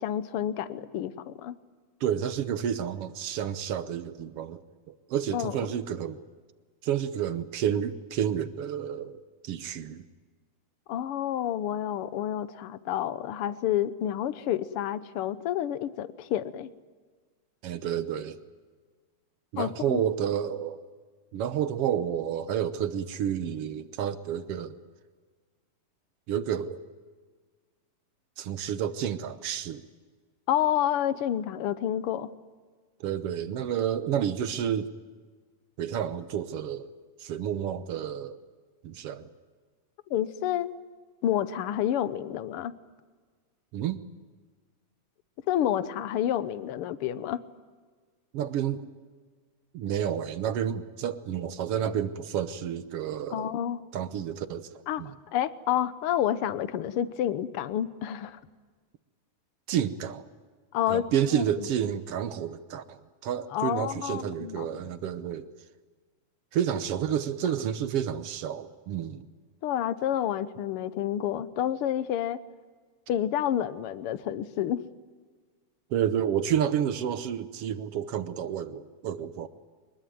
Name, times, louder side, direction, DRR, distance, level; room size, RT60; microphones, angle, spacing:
voice 1, 0.0-1.6 5.3-5.5 10.9-16.7 19.6-20.0 30.5-32.3 40.1-40.7 41.2-42.7 45.5-47.4 53.3-53.8 54.9-55.0 55.3-58.4 60.7-61.0 61.3-61.5 63.5-64.7 69.6-72.4 73.1-74.8, left 11 dB, 65° left, 15 dB, 1.5 m, -29 dB
voice 2, 2.0-4.6 4.9-6.2 6.8-10.0 17.6-18.4 19.5-20.8 21.3-24.8 26.3-26.8 28.4-29.8 33.0-34.9 35.8-36.9 37.2-38.4 38.8-39.3 43.7-44.0 48.3-48.8 49.7-53.5 53.9-55.1 59.7-60.3 60.9-65.5 66.5-69.2 75.9-79.5, right 9 dB, 65° right, 12 dB, 1.7 m, -30 dB
23.5 x 21.0 x 9.3 m, 1.5 s
omnidirectional pair, 3.4 m